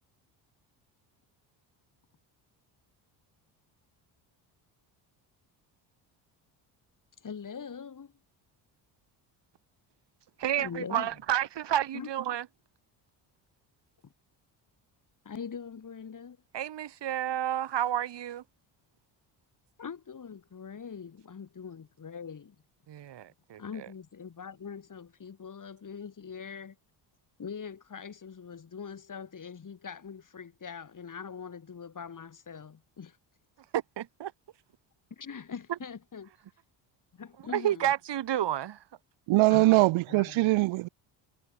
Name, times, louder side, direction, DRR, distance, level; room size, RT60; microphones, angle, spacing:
voice 1, 7.2-8.1 10.6-11.1 11.9-12.1 14.0-14.1 15.2-16.4 19.8-22.5 23.6-26.8 27.4-33.2 35.2-36.3 37.1-37.9 39.5-40.5, left 6 dB, 40° left, 5.0 m, -42 dB
voice 2, 10.4-12.4 16.5-18.4 22.9-23.6 33.7-34.3 37.5-38.8, right 11 dB, 60° right, 2.5 m, -30 dB
voice 3, 39.3-40.9, right 20 dB, 75° right, 1.1 m, -22 dB
supercardioid pair, 70°, 48 cm